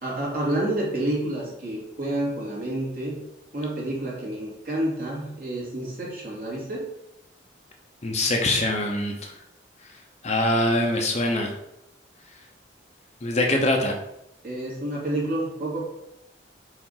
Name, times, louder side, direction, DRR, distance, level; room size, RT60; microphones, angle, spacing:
voice 1, 0.0-3.2 3.5-6.9 13.5-13.8 14.4-15.8, right 1 dB, 50° right, -4 dB, 2.6 m, -29 dB
voice 2, 8.0-9.3 10.2-11.5 13.2-13.9, left 1 dB, 35° left, 3 dB, 0.8 m, -23 dB
5.0 x 4.8 x 5.7 m, 0.85 s
head